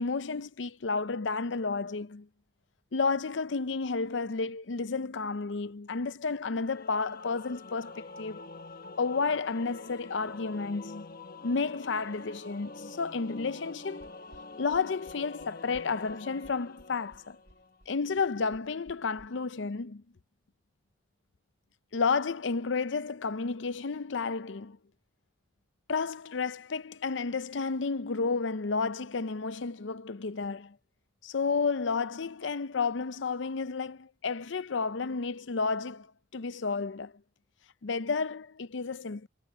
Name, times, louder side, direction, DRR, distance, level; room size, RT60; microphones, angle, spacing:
voice 1, 0.0-2.3 2.9-8.6 9.0-11.1 11.4-14.1 14.6-17.4 17.9-20.0 21.9-24.8 25.9-30.8 31.2-36.1 36.3-37.1 37.8-39.3, left 4 dB, 70° left, 0.6 m, -31 dB
Singing / Musical instrument, 6.6-17.8, left 3 dB, 50° left, 1.3 m, -46 dB
sound 1, 14.0-19.3, equal, 60° right, 3.2 m, -57 dB
head